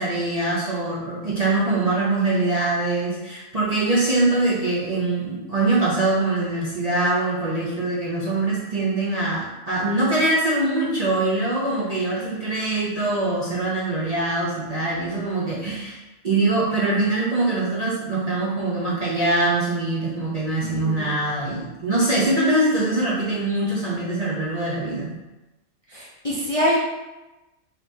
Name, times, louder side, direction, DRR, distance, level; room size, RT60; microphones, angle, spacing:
voice 1, 0.0-25.1, right 2 dB, 40° right, -7 dB, 0.6 m, -23 dB
voice 2, 20.6-21.2 25.9-26.8, left 1 dB, 40° left, -7 dB, 0.5 m, -25 dB
3.8 x 3.3 x 3.3 m, 1.0 s
omnidirectional pair, 1.4 m